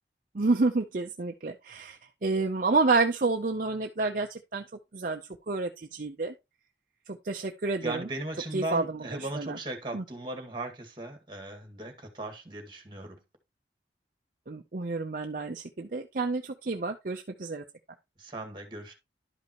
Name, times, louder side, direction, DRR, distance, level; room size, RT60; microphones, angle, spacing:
voice 1, 0.3-4.6 4.9-5.2 5.5-6.3 7.1-8.1 8.5-9.6 9.9-10.0 14.5-17.6, right 3 dB, 50° right, 0.6 m, -29 dB
voice 2, 7.8-13.2 18.2-18.9, right 2 dB, 25° right, 1.9 m, -37 dB
11.5 x 5.4 x 3.0 m
head